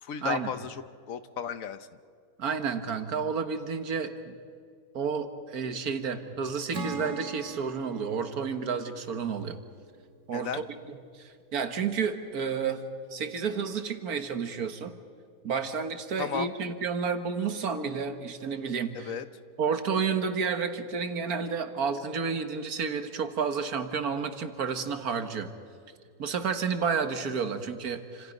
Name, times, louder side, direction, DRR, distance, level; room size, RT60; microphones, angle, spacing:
voice 1, 0.0-1.9 10.3-10.6 16.2-16.5 18.9-19.2, left 7 dB, 65° left, 12 dB, 1.2 m, -34 dB
voice 2, 2.4-4.4 4.9-9.6 10.3-10.6 10.9-12.8 13.1-15.0 15.4-19.1 19.6-25.5 26.2-28.3, right 6 dB, 75° right, 8 dB, 1.9 m, -31 dB
Acoustic guitar / Strum, 6.7-10.2, right 3 dB, 55° right, 1.9 m, -41 dB
29.0 x 26.5 x 5.3 m, 2.2 s
omnidirectional pair, 1.6 m